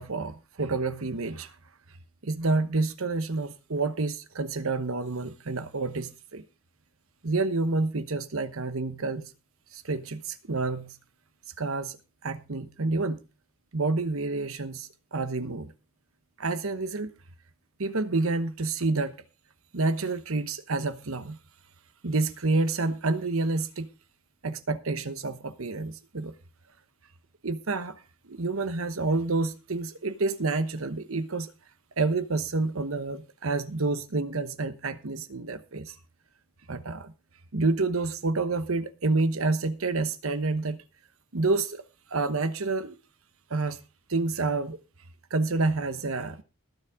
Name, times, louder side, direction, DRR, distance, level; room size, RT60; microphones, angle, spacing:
voice 1, 0.0-1.5 2.2-6.4 7.2-9.3 9.7-10.9 11.6-12.0 12.2-13.2 13.7-15.7 16.4-17.1 17.8-19.1 19.7-21.4 22.0-23.9 24.4-26.3 27.4-27.9 28.3-31.5 32.0-35.9 36.7-37.1 37.5-40.8 41.3-41.8 42.1-42.9 43.5-43.8 44.1-44.8 45.3-46.4, right 3 dB, 70° right, 1.0 m, -28 dB
20.5 x 7.3 x 3.6 m
head